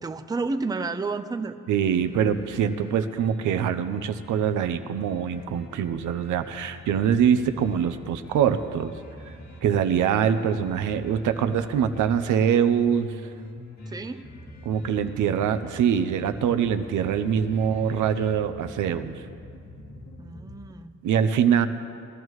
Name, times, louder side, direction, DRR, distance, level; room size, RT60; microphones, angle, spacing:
voice 1, 0.0-1.6 13.9-14.3 20.2-20.9, right 3 dB, 15° right, 9 dB, 0.6 m, -31 dB
voice 2, 1.7-8.9 9.6-13.1 14.6-19.2 21.0-21.7, right 8 dB, 80° right, 9 dB, 0.7 m, -24 dB
sound 1, 1.8-20.7, left 1 dB, 65° left, 2.3 m, -44 dB
20.5 x 12.0 x 3.2 m, 2.3 s
cardioid pair, 90°, 30 cm